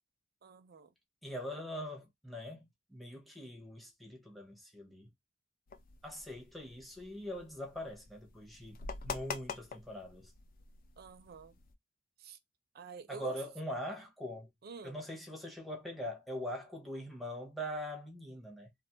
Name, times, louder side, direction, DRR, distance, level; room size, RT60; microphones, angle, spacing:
voice 1, 0.4-0.9 11.0-11.6 12.2-12.4 12.7-13.4 14.6-15.0, right 5 dB, 50° right, 0.4 m, -48 dB
voice 2, 1.2-5.1 6.0-10.3 13.1-14.5 14.8-18.7, equal, ahead, 0.6 m, -42 dB
sound 1, 5.7-11.7, left 5 dB, 45° left, 0.4 m, -46 dB
2.4 x 2.2 x 2.6 m
head